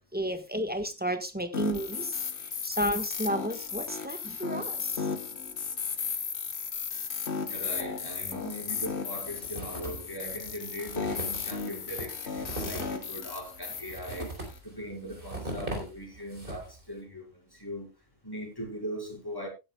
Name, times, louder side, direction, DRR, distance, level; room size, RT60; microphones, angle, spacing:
voice 1, 0.1-2.2 2.6-5.1, equal, 10° right, 1.3 m, -32 dB
sound 1, 1.5-14.6, left 5 dB, 90° left, 1.5 m, -35 dB
voice 2, 7.5-14.3 14.6-17.3 17.5-17.9 18.2-19.5, equal, 20° left, 5.0 m, -39 dB
sound 2, 9.2-10.1 10.4-10.5 10.8-16.8, right 1 dB, 55° right, 3.8 m, -39 dB
17.5 x 10.5 x 2.3 m
omnidirectional pair, 1.1 m